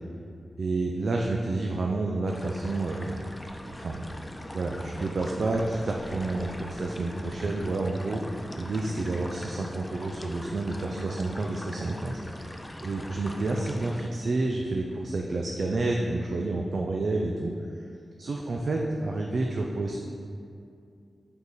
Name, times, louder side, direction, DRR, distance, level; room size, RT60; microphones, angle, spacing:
voice 1, 0.6-3.1 3.7-4.0 4.5-12.6 12.8-17.5 18.2-20.0, right 2 dB, 65° right, 0 dB, 0.4 m, -29 dB
sound 1, 2.3-14.1, left 1 dB, 15° left, 0.5 m, -41 dB
5.3 x 4.7 x 3.9 m, 2.5 s
wide cardioid pair, 90°, 0 cm